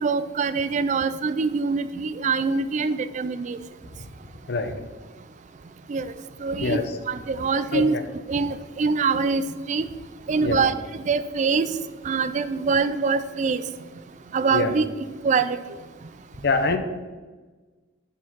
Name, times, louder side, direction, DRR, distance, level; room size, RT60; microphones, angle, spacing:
voice 1, 0.0-3.6 5.9-6.0 6.4-6.8 7.1-7.9 8.3-9.4 9.7-9.8 10.3-11.7 12.1-13.6 14.3-14.8 15.2-15.6, right 5 dB, 40° right, 13 dB, 0.3 m, -24 dB
voice 2, 7.7-8.0 10.4-10.7 14.5-14.8 16.4-16.8, left 3 dB, 60° left, 8 dB, 0.7 m, -24 dB
7.3 x 4.5 x 5.9 m, 1.3 s
head